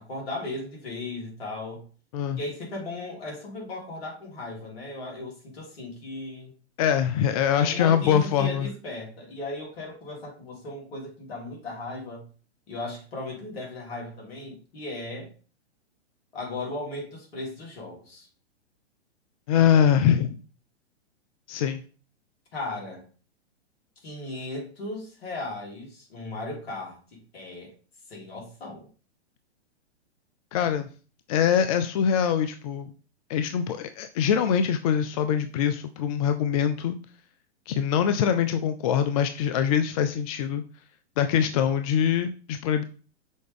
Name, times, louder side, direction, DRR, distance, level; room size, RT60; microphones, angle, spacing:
voice 1, 0.0-1.8 2.3-6.5 7.5-12.2 12.7-15.3 16.3-18.3 22.5-23.0 24.0-27.7 28.1-28.9, left 2 dB, 60° left, -1 dB, 3.2 m, -36 dB
voice 2, 6.8-8.7 19.5-20.3 21.5-21.8 30.5-30.9 31.3-32.9 33.3-37.0 37.7-40.6 41.2-42.8, left 8 dB, 35° left, 9 dB, 0.4 m, -23 dB
6.2 x 4.6 x 3.6 m, 0.38 s
hypercardioid pair, 115°, 34 cm